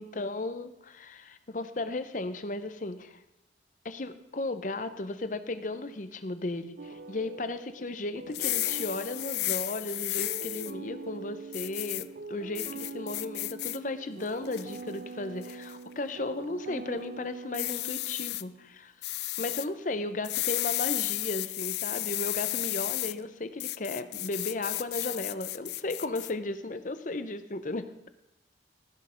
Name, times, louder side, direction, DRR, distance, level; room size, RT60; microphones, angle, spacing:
voice 1, 0.0-3.2 3.8-18.9 19.4-27.9, left 2 dB, 45° left, 11 dB, 0.7 m, -35 dB
sound 1, 6.8-18.5, right 4 dB, 60° right, 0.5 m, -44 dB
sound 2, 8.3-10.7 11.5-12.0 12.5-13.8 14.2-14.8 15.4-15.7 17.5-18.4 19.0-19.7 20.2-23.1 23.6-26.3, left 18 dB, 60° left, 0.3 m, -33 dB
15.5 x 6.4 x 5.1 m, 0.89 s
head